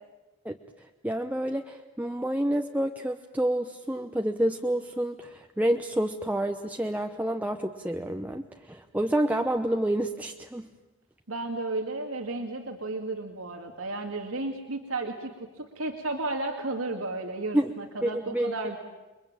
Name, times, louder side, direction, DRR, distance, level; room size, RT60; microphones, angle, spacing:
voice 1, 1.0-10.7 17.5-17.7 18.0-18.8, right 1 dB, 5° right, 3 dB, 0.9 m, -28 dB
voice 2, 11.3-18.8, right 2 dB, 85° right, 3 dB, 2.4 m, -33 dB
29.5 x 22.5 x 8.9 m, 1.1 s
head